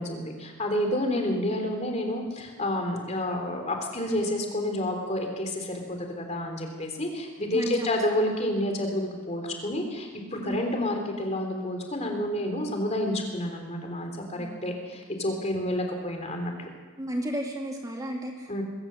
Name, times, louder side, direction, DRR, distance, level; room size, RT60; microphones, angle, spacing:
voice 1, 0.0-16.7 18.5-18.6, left 1 dB, 30° left, 3 dB, 3.4 m, -29 dB
voice 2, 7.5-8.0 10.4-10.6 14.4-14.8 17.0-18.6, right 1 dB, 15° right, 0 dB, 2.4 m, -33 dB
22.0 x 15.5 x 7.7 m, 1.4 s
head